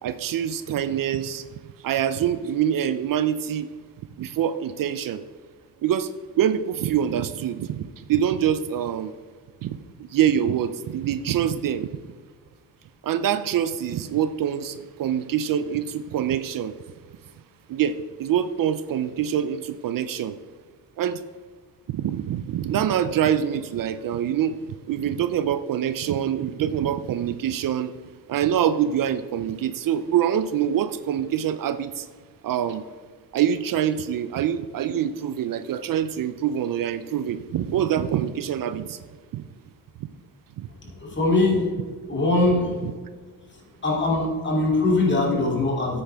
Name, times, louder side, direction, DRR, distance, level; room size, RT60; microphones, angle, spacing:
voice 1, 0.0-1.5 1.8-3.7 4.2-5.2 5.8-9.1 9.6-11.9 13.0-16.8 17.7-20.4 21.0-21.2 21.9-27.9 28.3-32.1 32.4-32.9 33.3-39.0 39.3-39.4 40.0-40.1 40.6-40.7 42.8-42.9, right 9 dB, 60° right, 12 dB, 0.5 m, -25 dB
voice 2, 41.0-41.7 42.1-42.7 43.8-46.0, left 2 dB, 30° left, -2 dB, 2.9 m, -21 dB
9.8 x 8.6 x 3.5 m, 1.5 s
cardioid pair, 95°, 38 cm